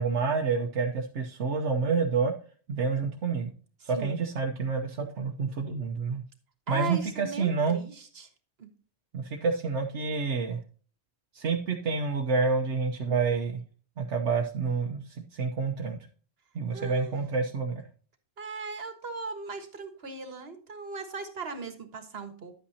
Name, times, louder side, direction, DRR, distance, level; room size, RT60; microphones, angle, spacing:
voice 1, 0.0-2.3 2.7-3.5 3.8-6.2 6.7-7.8 9.1-10.6 11.3-13.6 14.0-16.0 16.5-17.8, right 4 dB, 75° right, 2 dB, 1.2 m, -28 dB
voice 2, 3.8-4.1 6.7-8.3 8.6-8.7 16.7-17.2 18.4-22.5, right 4 dB, 60° right, 7 dB, 1.7 m, -38 dB
11.0 x 8.5 x 2.8 m, 0.42 s
omnidirectional pair, 1.2 m